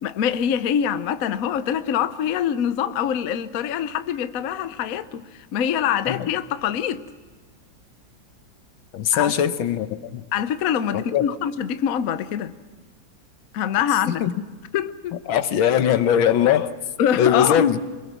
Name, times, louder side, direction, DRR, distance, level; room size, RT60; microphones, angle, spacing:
voice 1, 0.0-7.0 9.1-9.3 10.3-12.5 13.5-14.2 14.7-15.1 17.0-17.7, left 9 dB, 60° left, 1.0 m, -24 dB
voice 2, 8.9-9.9 10.1-10.3 10.9-11.3 14.2-14.3 15.3-16.7 17.2-17.8, left 9 dB, 85° left, 1.8 m, -20 dB
25.5 x 22.0 x 6.0 m
omnidirectional pair, 2.1 m